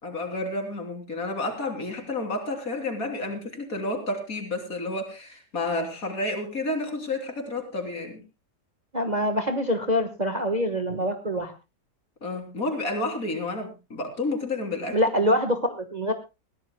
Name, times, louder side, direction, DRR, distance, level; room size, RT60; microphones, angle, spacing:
voice 1, 0.0-8.2 12.2-15.0, left 2 dB, 50° left, 4 dB, 3.6 m, -30 dB
voice 2, 8.9-11.5 14.9-16.1, equal, 25° right, 6 dB, 1.2 m, -25 dB
22.0 x 16.0 x 2.2 m, 0.27 s
omnidirectional pair, 2.0 m